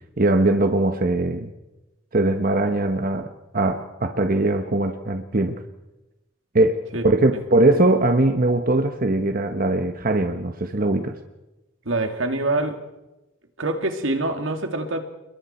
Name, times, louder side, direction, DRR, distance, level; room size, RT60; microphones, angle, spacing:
voice 1, 0.2-1.5 2.1-3.3 3.5-5.6 6.5-11.1, right 2 dB, 45° right, 7 dB, 1.1 m, -21 dB
voice 2, 11.9-12.8 13.6-15.0, right 2 dB, 85° right, 6 dB, 2.4 m, -25 dB
29.5 x 21.5 x 4.4 m, 1.0 s
head